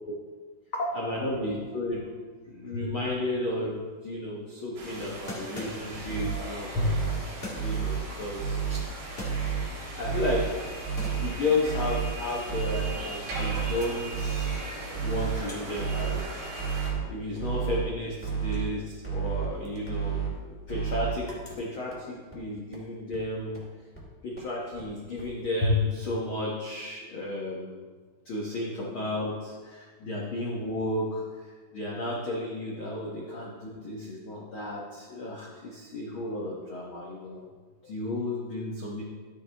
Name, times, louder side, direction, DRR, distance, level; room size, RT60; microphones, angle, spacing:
voice 1, 0.7-2.1 2.4-8.8 9.9-10.5 11.2-14.6 15.0-16.2 17.1-20.2 20.7-21.3 21.6-23.6 24.2-27.8 28.2-37.4 37.8-39.0, left 2 dB, 85° left, -4 dB, 1.1 m, -32 dB
sound 1, 3.6-3.7 3.9-4.0 5.3-6.2 7.4-7.9 8.9-9.9 10.3-10.6 11.0-13.1 13.4-14.2 14.5-18.8 19.0-22.3, left 1 dB, 35° left, 1.0 m, -44 dB
sound 2, 4.8-16.9, right 2 dB, 70° right, 4.5 m, -40 dB
sound 3, 5.9-6.3 6.7-7.2 7.6-8.0 8.4-8.8 9.2-9.6 10.0-10.4 10.8-11.3 11.7-12.1 12.5-12.9 13.3-13.7 14.1-14.6 14.9-15.4 15.8-16.2 16.6-17.0 17.4-17.8 18.2-18.7 19.0-19.5 19.9-20.3 20.7-21.1 21.5-21.6 21.9-22.0 22.3-22.4 22.7-22.8 23.1-23.2 23.5-23.6 24.0-24.1 24.4-24.5 24.8-24.9 25.2-25.3, right 7 dB, 5° left, 2.0 m, -30 dB
12.5 x 9.5 x 3.4 m, 1.5 s
omnidirectional pair, 4.4 m